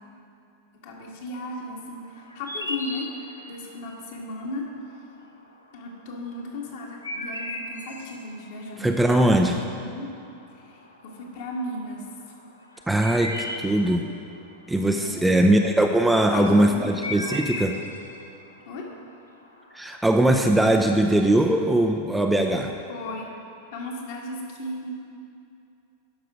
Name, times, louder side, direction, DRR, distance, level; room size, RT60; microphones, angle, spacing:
voice 1, 0.8-3.1 3.4-5.0 5.7-10.1 10.5-12.1 14.9-15.5 16.1-17.4 18.6-18.9 22.9-23.3 23.7-24.9, left 2 dB, 50° left, -1 dB, 1.6 m, -35 dB
sound 1, 1.8-20.1, left 1 dB, 80° left, 0.8 m, -38 dB
voice 2, 8.8-9.6 12.9-14.1 14.7-17.8 19.7-22.7, right 1 dB, 5° right, 3 dB, 0.5 m, -20 dB
12.0 x 5.7 x 5.0 m, 2.6 s
figure-of-eight pair, 90°, 0 cm